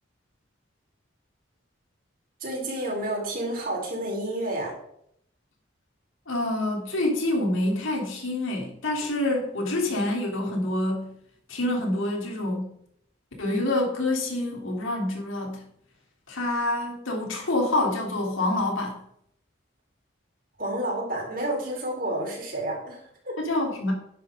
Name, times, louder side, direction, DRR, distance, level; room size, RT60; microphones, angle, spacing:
voice 1, 2.4-4.7 20.6-23.3, right 1 dB, 45° right, -1 dB, 4.5 m, -30 dB
voice 2, 6.3-11.1 11.5-12.7 13.4-15.6 16.3-19.0 23.4-23.9, left 1 dB, 85° left, 0 dB, 3.7 m, -27 dB
11.5 x 10.5 x 3.9 m, 0.71 s
head